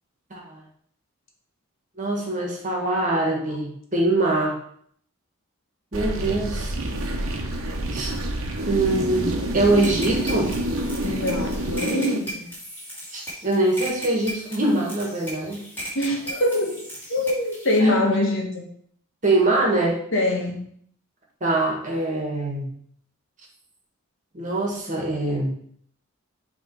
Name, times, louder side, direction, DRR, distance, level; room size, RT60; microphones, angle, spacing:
voice 1, 0.3-0.6 2.0-4.6 5.9-6.7 7.9-8.1 8.7-10.5 13.1-15.6 17.8-18.0 19.2-20.0 21.4-22.7 24.3-25.5, right 2 dB, 35° right, -1 dB, 1.6 m, -23 dB
sound 1, 5.9-12.2, right 1 dB, 70° right, 1.0 m, -27 dB
sound 2, 9.8-17.8, right 1 dB, 10° left, 2.5 m, -37 dB
voice 2, 11.0-12.4 15.9-16.8 17.1-18.6 20.1-20.6, left 1 dB, 55° left, 1 dB, 1.4 m, -23 dB
8.5 x 3.3 x 4.6 m, 0.64 s
head